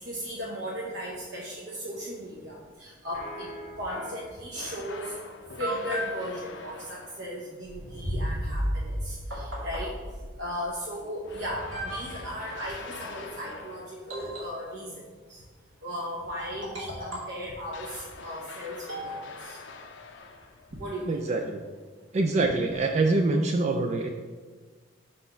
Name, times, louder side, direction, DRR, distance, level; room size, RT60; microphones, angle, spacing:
voice 1, 0.0-3.5 3.8-5.1 5.6-9.9 10.4-15.0 15.3-15.4 15.8-19.6 20.7-21.3, equal, 60° right, -4 dB, 0.9 m, -36 dB
sound 1, 3.1-4.3 5.1-5.2 5.6-6.2 8.7-8.8 9.3-9.9 10.9-11.0 11.6-12.4 14.1-14.9 16.4-17.4 18.9-19.8, equal, 75° right, 2.0 m, -37 dB
sound 2, 4.5-7.5 11.2-14.1 17.7-20.8, left 4 dB, 65° left, 0.6 m, -44 dB
sound 3, 7.7-10.5, equal, 5° right, 0.9 m, -32 dB
voice 2, 21.1-21.6 22.1-24.1, right 2 dB, 35° right, 3 dB, 0.3 m, -25 dB
4.9 x 4.2 x 5.6 m, 1.4 s
head